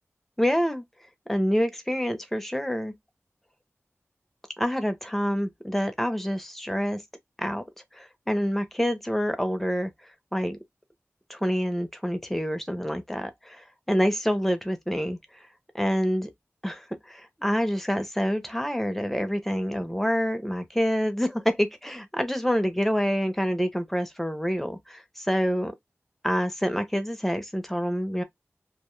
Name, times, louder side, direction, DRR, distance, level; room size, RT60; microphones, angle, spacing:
voice 1, 0.4-0.8 1.3-2.9 4.6-7.0 7.4-7.6 7.9-9.9 10.3-10.6 11.3-15.2 15.7-16.3 16.6-25.7 26.2-28.2, equal, 5° left, 0.5 m, -27 dB
2.1 x 2.0 x 3.0 m
wide cardioid pair, 70°, 5 cm